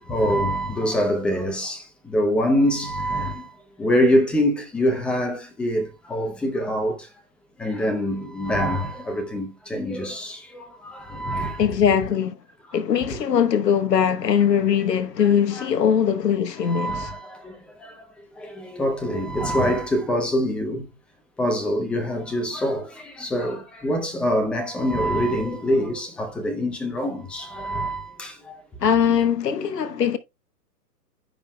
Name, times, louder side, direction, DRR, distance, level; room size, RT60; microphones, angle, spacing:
voice 1, 0.0-7.1 7.6-11.7 15.5-15.7 16.6-18.0 18.4-20.9 21.4-28.6, equal, ahead, 0.6 m, -25 dB
voice 2, 11.6-12.4 12.7-17.1 28.8-30.2, left 8 dB, 75° left, 1.2 m, -21 dB
15.0 x 5.3 x 2.2 m
hypercardioid pair, 135°, 49 cm